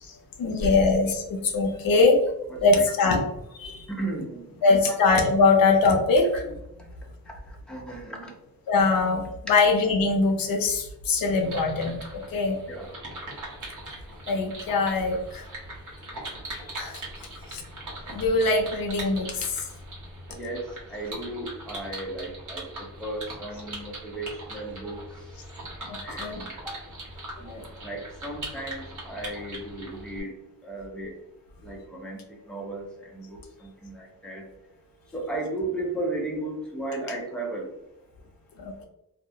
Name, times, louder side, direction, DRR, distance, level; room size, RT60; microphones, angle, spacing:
voice 1, 0.0-2.2 2.6-3.2 3.5-3.9 4.6-6.6 8.7-12.6 14.3-15.5 16.5-17.0 17.5-17.6 18.1-19.7 25.9-26.4 27.5-27.6 38.6-38.9, left 3 dB, 85° left, 3 dB, 0.5 m, -23 dB
voice 2, 3.9-4.8 7.2-8.3 12.7-12.9 20.3-26.8 27.4-37.7, right 2 dB, 5° left, -1 dB, 0.6 m, -36 dB
sound 1, 11.4-30.2, right 1 dB, 60° right, 1.0 m, -40 dB
2.2 x 2.0 x 2.7 m, 0.85 s
cardioid pair, 80°, 34 cm